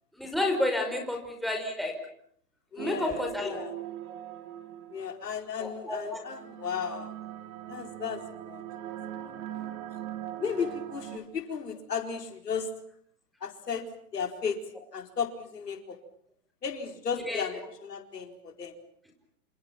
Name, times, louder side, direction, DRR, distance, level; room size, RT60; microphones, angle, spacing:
voice 1, 0.2-1.9 2.8-3.7 5.6-6.2 17.3-17.4, left 1 dB, ahead, 2 dB, 5.2 m, -30 dB
voice 2, 2.7-3.7 4.9-7.1 7.7-8.6 9.2-9.3 10.4-12.7 13.4-16.0 16.6-18.8, left 6 dB, 90° left, 5 dB, 4.6 m, -35 dB
sound 1, 2.8-5.3 6.2-11.2, right 12 dB, 35° right, 3.0 m, -41 dB
28.5 x 28.0 x 5.9 m, 0.65 s
hypercardioid pair, 140°, 47 cm